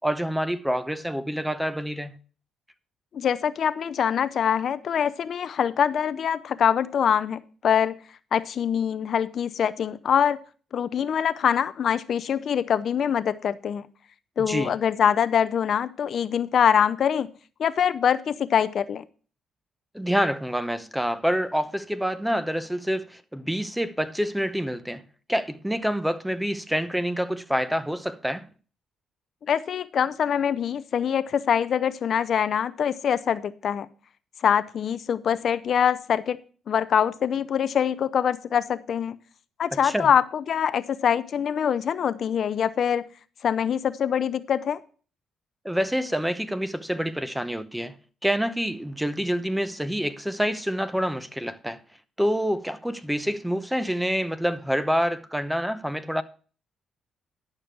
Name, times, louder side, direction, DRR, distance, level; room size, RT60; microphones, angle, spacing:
voice 1, 0.0-2.2 14.4-14.7 19.9-25.0 25.3-28.5 39.7-40.1 45.6-48.0 48.2-51.8 52.2-56.2, equal, 5° right, 0.7 m, -27 dB
voice 2, 3.1-8.0 8.3-10.4 10.7-13.8 14.4-17.3 17.6-19.0 29.5-33.9 34.4-36.4 36.7-39.2 39.6-43.0 43.4-44.8, left 8 dB, 60° left, 0.5 m, -24 dB
11.0 x 6.7 x 4.6 m
cardioid pair, 90°, 0 cm